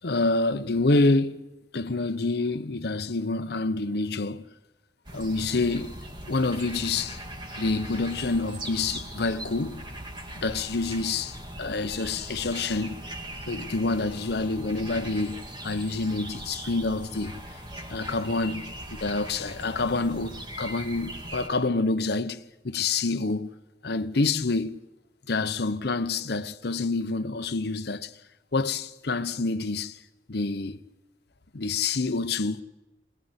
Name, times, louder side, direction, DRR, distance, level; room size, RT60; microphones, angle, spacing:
voice 1, 0.0-1.4 1.7-4.4 5.1-6.0 6.3-7.2 7.6-9.8 10.3-13.0 13.5-17.4 17.9-23.6 23.8-24.8 25.3-28.1 28.5-30.0 30.3-30.8 31.5-32.6, left 3 dB, 65° left, 0.9 m, -27 dB
sound 1, 5.0-21.5, right 1 dB, 25° right, 2.2 m, -40 dB
21.5 x 21.0 x 8.1 m
head